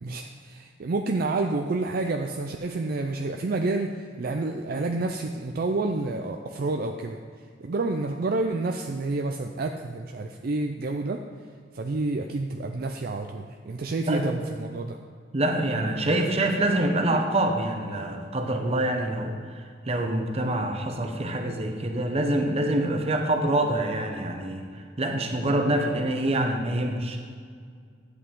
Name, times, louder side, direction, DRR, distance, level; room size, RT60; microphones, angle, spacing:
voice 1, 0.0-7.2 7.6-11.2 11.7-15.0, right 2 dB, 55° right, 4 dB, 0.4 m, -29 dB
voice 2, 14.1-14.4 15.3-24.6 25.0-27.2, right 1 dB, 35° right, 4 dB, 0.9 m, -26 dB
11.0 x 8.0 x 3.7 m, 2.1 s
head